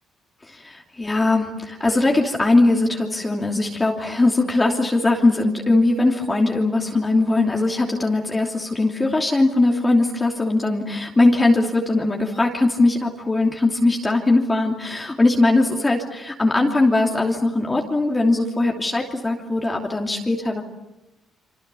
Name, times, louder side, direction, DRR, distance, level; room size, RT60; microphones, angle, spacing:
voice 1, 0.4-20.6, left 2 dB, 20° left, 0 dB, 2.9 m, -20 dB
27.5 x 25.5 x 7.0 m, 0.99 s
cardioid pair, 90°, 0 cm